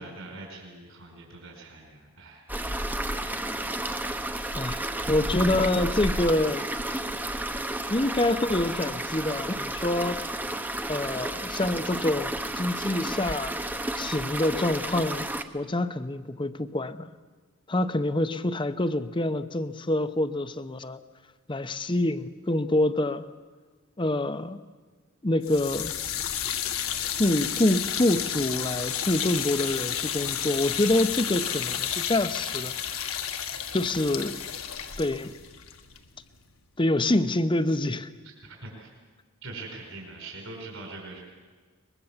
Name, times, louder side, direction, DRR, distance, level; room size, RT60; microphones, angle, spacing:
voice 1, 0.0-3.4 4.4-4.6 38.4-38.9 39.4-41.2, right 2 dB, 65° right, 0 dB, 5.0 m, -43 dB
sound 1, 2.5-15.4, right 1 dB, 10° right, 0.9 m, -32 dB
voice 2, 4.6-6.7 7.9-10.2 10.9-13.6 14.0-15.3 15.5-17.1 17.7-21.0 21.5-23.2 24.0-24.6 25.2-25.9 27.2-33.2 33.7-34.3 35.0-35.3 36.8-38.1, left 1 dB, 25° left, 12 dB, 0.8 m, -26 dB
sound 2, 25.4-36.5, left 9 dB, 80° left, 1.7 m, -32 dB
23.0 x 21.5 x 7.3 m, 1.5 s
head